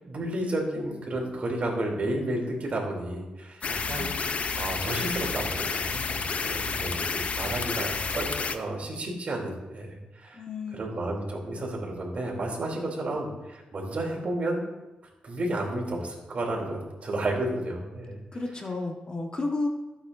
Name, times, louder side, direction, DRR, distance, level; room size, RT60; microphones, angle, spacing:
voice 1, 0.0-10.4 10.7-14.6 15.2-18.2, right 1 dB, 50° right, -1 dB, 3.3 m, -32 dB
sound 1, 3.6-8.6, left 5 dB, 50° left, 0.7 m, -30 dB
voice 2, 10.3-10.9 18.3-19.7, left 2 dB, 30° left, 2 dB, 1.5 m, -32 dB
16.0 x 8.8 x 2.7 m, 1.1 s
cardioid pair, 90°, 3 cm